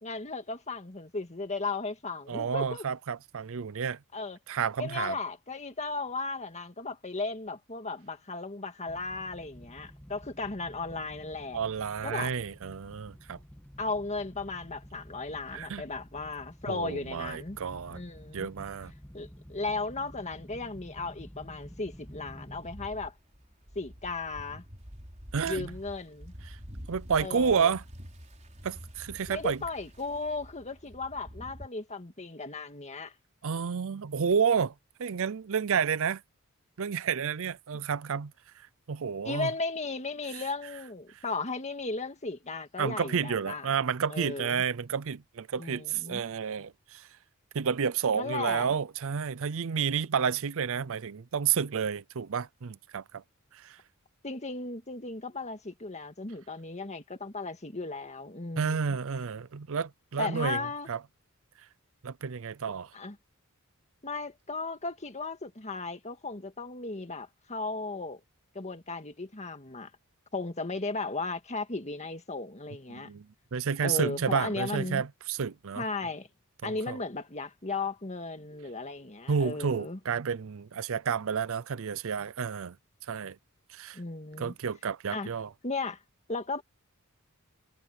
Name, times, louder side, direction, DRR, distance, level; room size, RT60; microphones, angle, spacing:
voice 1, 0.0-2.9 4.1-4.4 4.8-11.6 12.0-12.3 13.8-17.6 17.9-18.5 19.1-23.1 23.8-24.6 25.5-26.3 27.2-27.7 29.3-33.1 39.2-43.7 44.1-44.6 45.6-46.2 48.1-48.7 54.2-58.8 60.2-60.9 62.9-63.2 64.0-68.2 68.5-69.9 70.3-73.1 73.8-75.0 75.8-76.3 76.6-80.0 83.9-84.5 85.1-85.3 85.6-86.0 86.3-86.6, left 3 dB, 30° left, 1.9 m, -36 dB
voice 2, 2.3-4.0 4.5-5.2 11.5-13.4 15.5-15.8 16.7-18.0 18.3-18.9 25.3-25.7 26.5-26.6 26.9-27.8 28.6-29.6 33.4-34.7 35.0-36.2 36.8-38.3 38.9-39.5 42.8-47.1 47.5-53.2 53.6-53.8 58.6-60.6 60.9-61.0 62.0-62.9 72.9-73.3 73.5-75.8 76.6-77.0 79.3-82.8 83.1-83.4 83.7-84.0 84.4-85.5, right 6 dB, 65° right, 0.5 m, -30 dB
sound 1, 8.9-23.0 23.4-23.7 24.2-24.3 24.5-24.6, equal, 5° left, 2.0 m, -50 dB
sound 2, 21.9-31.7, equal, 35° right, 4.8 m, -47 dB
head